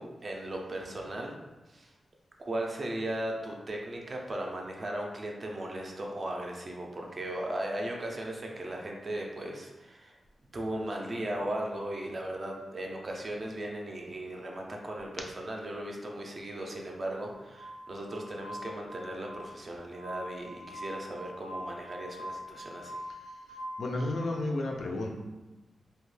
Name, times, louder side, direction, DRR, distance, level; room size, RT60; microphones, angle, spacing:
voice 1, 0.0-1.4 1.7-1.9 2.4-10.2 10.5-23.0, right 1 dB, 35° right, 0 dB, 0.4 m, -37 dB
Glass, 17.5-24.2, equal, 85° right, 0.5 m, -43 dB
voice 2, 23.5-25.1, left 2 dB, 65° left, 1 dB, 0.4 m, -32 dB
2.8 x 2.2 x 3.1 m, 1.1 s
wide cardioid pair, 165°, 0 cm